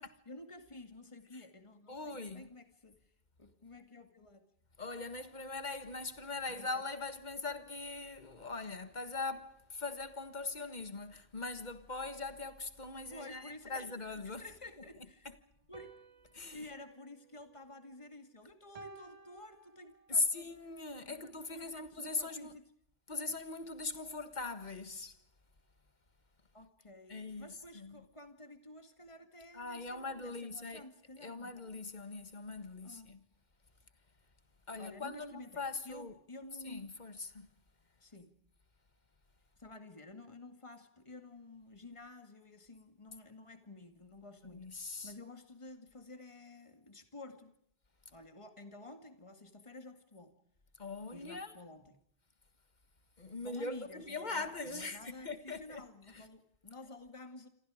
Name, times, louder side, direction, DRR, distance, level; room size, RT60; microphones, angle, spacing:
voice 1, 0.0-3.0 3.4-4.5 6.5-6.8 13.1-14.0 14.2-15.3 15.7-16.0 16.5-20.6 21.1-22.6 26.5-31.6 32.8-33.2 34.8-36.8 38.0-38.3 39.6-47.5 48.1-50.3 51.1-52.0 53.4-57.5, left 2 dB, 30° left, 2.2 m, -52 dB
voice 2, 1.9-2.5 4.8-14.5 15.3-15.4 16.3-16.7 20.1-22.6 23.1-25.2 27.1-27.5 27.7-28.1 29.5-30.9 31.2-33.2 34.7-36.1 36.6-37.5 44.4-45.1 50.8-51.6 53.2-56.3, left 3 dB, 45° left, 1.7 m, -41 dB
sound 1, 15.7-18.2 18.7-20.3, right 4 dB, 40° right, 1.1 m, -57 dB
28.0 x 26.5 x 5.0 m
omnidirectional pair, 1.0 m